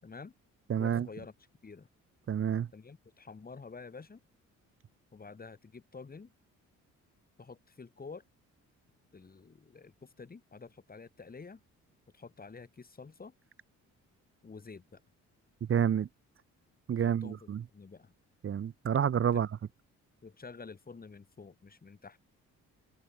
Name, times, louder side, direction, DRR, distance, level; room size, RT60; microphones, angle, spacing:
voice 1, 0.0-0.3 0.8-1.3 1.6-1.9 2.7-4.2 5.1-6.3 7.4-8.2 9.1-11.6 12.1-13.3 14.4-15.0 16.9-18.1 20.2-22.2, left 4 dB, 30° left, 4.6 m, -49 dB
voice 2, 0.7-1.1 2.3-2.7 15.7-16.1 16.9-17.6 18.4-19.5, right 8 dB, 45° right, 1.1 m, -29 dB
cardioid pair, 90°, 30 cm